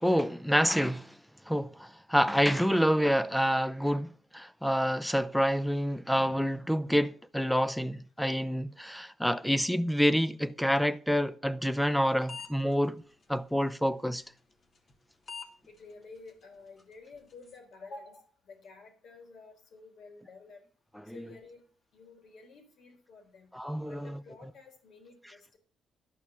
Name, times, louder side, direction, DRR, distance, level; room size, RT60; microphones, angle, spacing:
voice 1, 0.0-1.1 1.5-13.0 13.3-14.2 23.5-24.1, equal, ahead, 0.6 m, -27 dB
sound 1, 11.9-12.0 12.3-12.7 13.2-13.3 14.7-14.9 15.3-15.5 15.8-15.9 16.3-16.4 16.8-16.9 17.1-17.6, left 5 dB, 45° left, 2.1 m, -42 dB
voice 2, 15.7-20.6 21.1-21.6 21.9-23.5 23.9-25.6, left 3 dB, 65° left, 3.8 m, -51 dB
12.0 x 5.8 x 8.4 m
cardioid pair, 90°, 0 cm